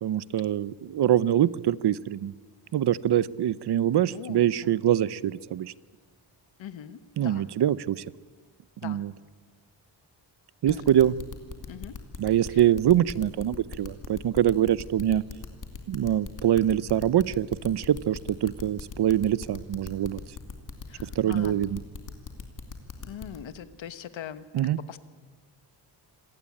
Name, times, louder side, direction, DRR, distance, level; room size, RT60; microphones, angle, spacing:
voice 1, 0.0-2.3 2.7-5.7 7.2-8.0 8.8-9.1 10.6-11.1 12.2-15.3 15.9-20.2 21.0-21.8 24.5-24.8, right 11 dB, 60° right, 20 dB, 0.7 m, -24 dB
voice 2, 4.0-4.8 6.6-7.5 8.8-9.0 10.7-11.1 11.7-12.0 12.5-12.7 20.9-21.6 23.0-25.0, left 9 dB, 85° left, 13 dB, 1.4 m, -42 dB
sound 1, 10.7-23.4, left 5 dB, 45° left, 2.7 m, -39 dB
27.0 x 18.0 x 8.6 m, 1.5 s
wide cardioid pair, 165°, 44 cm